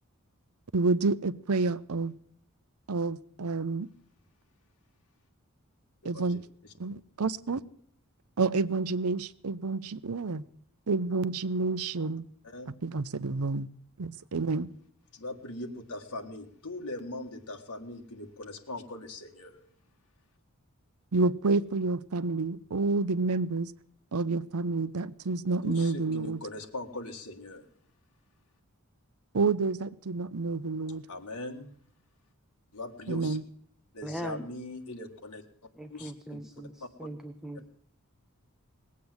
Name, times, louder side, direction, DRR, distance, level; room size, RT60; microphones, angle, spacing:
voice 1, 0.7-2.1 2.9-3.9 6.0-6.4 6.8-7.6 8.4-10.4 10.9-12.3 12.8-13.7 14.0-14.7 21.1-23.7 24.1-26.4 29.3-31.1 33.1-33.4, right 3 dB, 75° right, 15 dB, 0.7 m, -29 dB
voice 2, 15.1-19.6 25.6-27.7 31.1-31.7 32.7-33.4 33.9-35.4 35.9-36.4 36.8-37.1, left 2 dB, 85° left, 1 dB, 1.8 m, -40 dB
voice 3, 34.0-34.5 35.8-37.7, equal, ahead, 6 dB, 0.8 m, -40 dB
19.5 x 8.5 x 7.9 m, 0.62 s
head